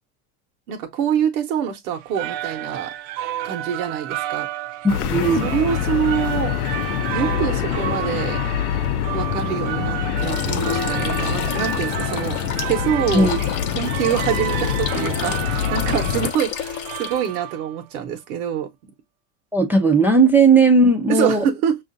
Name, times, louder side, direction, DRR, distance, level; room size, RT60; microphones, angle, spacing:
voice 1, 0.7-2.9 3.4-4.5 5.4-6.5 7.1-8.4 9.1-12.4 12.7-18.9 21.1-21.8, right 9 dB, 90° right, 0.9 m, -25 dB
sound 1, 1.9-17.8, right 13 dB, 65° right, 0.5 m, -31 dB
voice 2, 4.8-5.5 13.1-13.4 19.5-21.4, right 3 dB, 5° right, 0.4 m, -16 dB
sound 2, 4.9-16.3, left 10 dB, 85° left, 0.6 m, -25 dB
sound 3, 10.2-17.4, left 9 dB, 40° left, 0.7 m, -31 dB
6.1 x 2.4 x 2.5 m
supercardioid pair, 130°, 43 cm